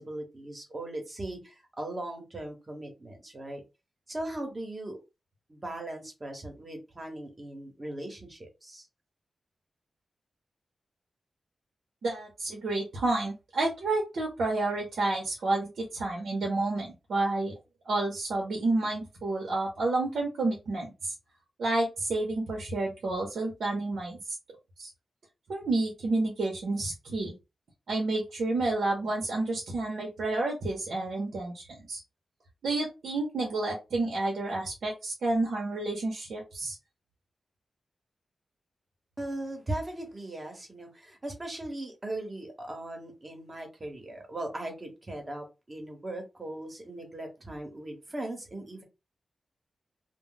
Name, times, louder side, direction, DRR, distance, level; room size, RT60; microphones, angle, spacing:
voice 1, 0.0-3.6 4.1-5.0 5.5-8.9 39.2-48.8, right 1 dB, 30° right, 2 dB, 1.1 m, -39 dB
voice 2, 12.0-17.5 17.9-21.1 21.6-24.2 24.8-24.9 25.5-27.3 27.9-32.0 32.6-36.8, right 2 dB, 85° right, -1 dB, 0.8 m, -30 dB
2.2 x 2.1 x 3.8 m, 0.26 s
cardioid pair, 80°, 0 cm